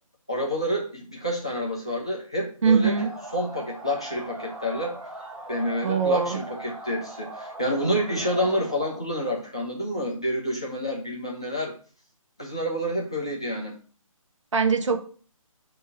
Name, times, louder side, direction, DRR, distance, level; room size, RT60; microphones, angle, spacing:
voice 1, 0.3-5.0 5.5-11.7 12.4-13.7, equal, 10° left, -4 dB, 0.4 m, -28 dB
voice 2, 2.6-3.1 5.8-6.4 14.5-15.0, right 5 dB, 60° right, 5 dB, 1.2 m, -22 dB
sound 1, 2.8-9.0, right 1 dB, 5° right, 2.9 m, -40 dB
8.1 x 2.8 x 6.0 m, 0.42 s
hypercardioid pair, 170°, 18 cm